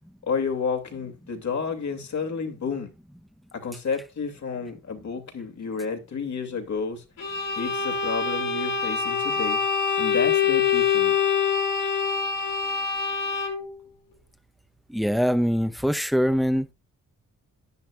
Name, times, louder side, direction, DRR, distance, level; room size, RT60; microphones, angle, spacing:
voice 1, 0.2-2.9 3.5-7.0 7.5-9.6 10.0-11.2, left 5 dB, 55° left, 2.5 m, -31 dB
Bowed string instrument, 7.2-13.8, left 6 dB, 75° left, 2.7 m, -25 dB
voice 2, 14.9-16.7, equal, ahead, 0.8 m, -23 dB
10.5 x 9.9 x 2.4 m
cardioid pair, 95°, 33 cm